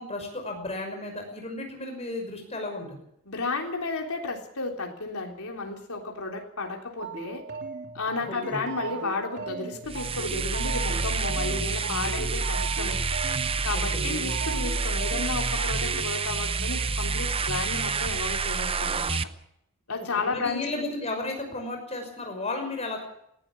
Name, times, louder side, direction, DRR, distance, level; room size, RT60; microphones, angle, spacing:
voice 1, 0.0-2.9 8.2-8.6 13.7-14.1 19.9-23.0, left 2 dB, 30° left, 3 dB, 5.9 m, -34 dB
voice 2, 3.3-7.4 7.9-13.0 13.6-19.2 19.9-20.9, left 3 dB, 80° left, 2 dB, 3.6 m, -33 dB
sound 1, 7.0-16.0, right 4 dB, 50° right, 3.4 m, -38 dB
sound 2, 9.8-19.2, right 4 dB, 25° right, 0.7 m, -28 dB
19.0 x 16.5 x 8.6 m, 0.77 s
head